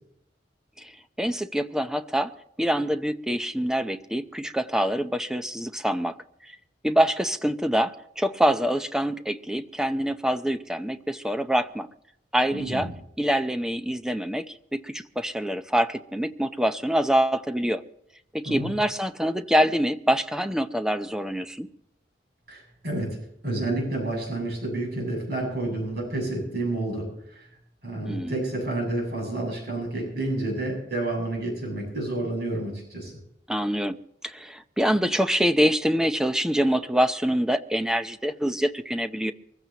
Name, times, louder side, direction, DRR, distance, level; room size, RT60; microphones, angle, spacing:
voice 1, 1.2-2.3 2.6-6.2 6.8-11.9 12.3-12.9 13.2-17.8 18.3-21.7 28.0-28.4 33.5-34.0 34.2-39.3, equal, 5° right, 8 dB, 0.6 m, -25 dB
voice 2, 12.5-12.9 18.5-18.7 22.5-23.2 23.4-27.5 27.8-33.1, right 2 dB, 60° right, 1 dB, 7.6 m, -30 dB
24.0 x 15.0 x 2.9 m, 0.76 s
head